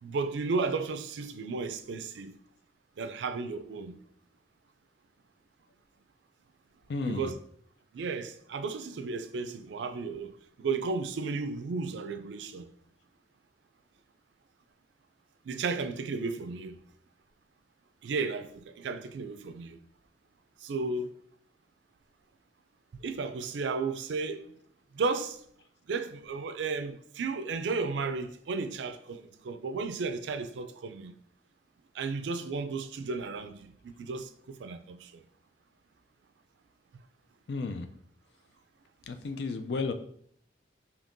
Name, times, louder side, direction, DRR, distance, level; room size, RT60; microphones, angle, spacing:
voice 1, 0.0-2.3 3.0-4.0 7.1-7.4 7.9-10.3 10.6-12.7 15.5-16.8 18.0-19.8 20.6-21.1 23.0-24.5 24.9-25.4 25.9-31.1 31.9-35.2, right 4 dB, 90° right, 0.4 m, -34 dB
voice 2, 6.9-7.3 37.5-37.9 39.1-39.9, left 4 dB, 70° left, 0.4 m, -33 dB
5.1 x 2.9 x 2.6 m
head